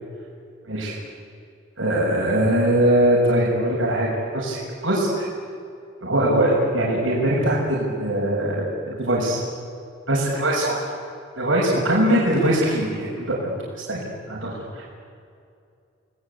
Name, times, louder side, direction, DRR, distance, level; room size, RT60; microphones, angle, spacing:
voice 1, 1.8-4.1 4.3-5.3 6.0-9.4 10.1-10.8 11.4-13.5 13.9-14.0 14.3-14.8, right 1 dB, 85° right, -4 dB, 6.4 m, -21 dB
29.5 x 20.0 x 8.4 m, 2.4 s
head